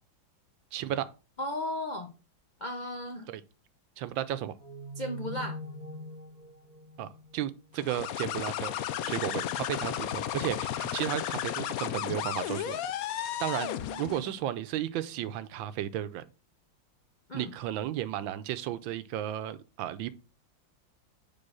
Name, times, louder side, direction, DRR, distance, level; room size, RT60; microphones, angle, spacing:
voice 1, 0.7-1.1 3.3-3.4 4.0-4.5 7.0-8.7 9.0-12.8 13.1-13.7 14.0-16.2 17.3-20.1, right 12 dB, 80° right, 1.3 m, -34 dB
voice 2, 1.4-2.1 2.6-3.3 5.0-5.6 13.6-14.3 17.3-17.5, left 1 dB, 60° left, 0.4 m, -36 dB
sound 1, 4.6-8.0, equal, 45° right, 0.5 m, -43 dB
sound 2, 7.8-14.3, left 11 dB, 90° left, 0.7 m, -34 dB
7.0 x 3.7 x 5.5 m
omnidirectional pair, 2.1 m